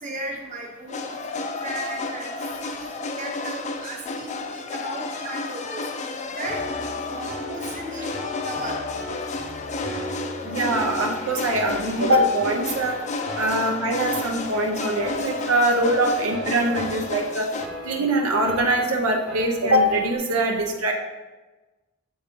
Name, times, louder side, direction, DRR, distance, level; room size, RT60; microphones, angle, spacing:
voice 1, 0.0-2.3 2.6-2.9 3.2-5.8 6.4-6.6 7.1-8.1 8.4-8.8 13.4-13.6 16.0-16.1, right 1 dB, 35° right, -2 dB, 1.0 m, -36 dB
sound 1, 0.9-17.7, left 3 dB, 35° left, 0.4 m, -32 dB
Piano, 6.4-20.2, left 1 dB, ahead, 0.7 m, -39 dB
voice 2, 10.4-13.0 13.4-17.5 17.8-20.9, right 1 dB, 85° right, 2 dB, 0.6 m, -22 dB
7.0 x 3.8 x 3.7 m, 1.2 s
head